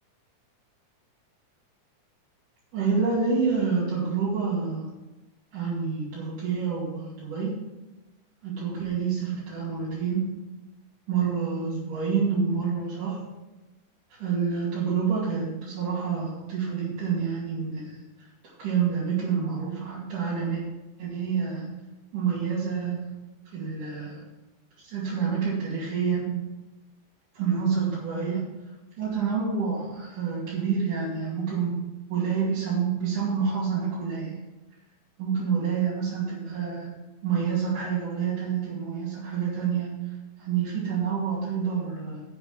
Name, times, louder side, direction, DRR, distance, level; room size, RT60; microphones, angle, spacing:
voice 1, 2.7-4.9 5.5-7.5 8.4-10.4 11.1-13.2 14.1-18.0 18.6-20.6 21.0-21.7 22.1-23.1 23.5-24.2 24.8-26.5 27.3-28.5 29.0-34.3 35.2-42.2, right 6 dB, 75° right, -8 dB, 4.0 m, -28 dB
10.5 x 7.0 x 6.1 m, 1.1 s
omnidirectional pair, 3.7 m